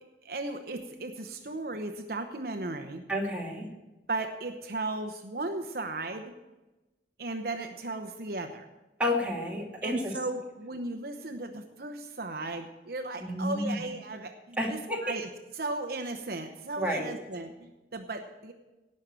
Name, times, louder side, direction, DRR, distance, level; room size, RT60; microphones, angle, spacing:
voice 1, 0.0-3.0 4.1-6.3 7.2-8.7 9.8-18.5, right 2 dB, 55° right, 6 dB, 0.9 m, -36 dB
voice 2, 3.1-3.7 9.0-10.1 13.2-13.8 14.6-15.2 16.8-17.2, left 1 dB, 10° right, -3 dB, 2.5 m, -30 dB
18.0 x 6.5 x 7.5 m, 1.1 s
head